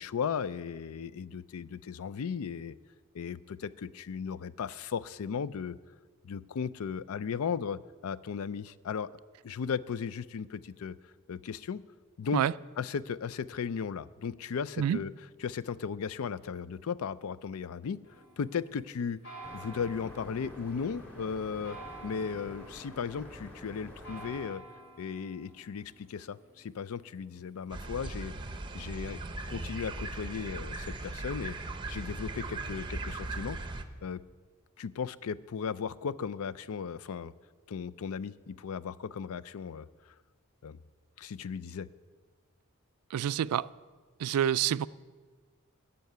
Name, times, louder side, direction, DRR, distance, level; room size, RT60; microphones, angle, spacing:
voice 1, 0.0-2.8 3.1-5.8 6.2-9.1 9.4-11.0 11.3-11.8 12.2-12.4 12.8-15.1 15.4-18.0 18.4-19.2 19.5-21.8 22.0-24.6 25.0-28.3 28.7-29.2 29.5-31.6 31.9-33.6 34.0-34.2 34.8-37.3 37.7-40.1 40.6-40.8 41.2-41.9, left 6 dB, 70° left, 0.4 m, -36 dB
sound 1, 18.0-28.2, right 2 dB, 55° left, 5.0 m, -52 dB
sound 2, 19.4-24.4, equal, 5° left, 2.7 m, -48 dB
sound 3, 27.7-33.8, right 2 dB, 20° right, 0.7 m, -38 dB
voice 2, 43.1-43.7 44.2-44.9, right 10 dB, 85° right, 0.3 m, -27 dB
14.0 x 5.8 x 9.3 m
head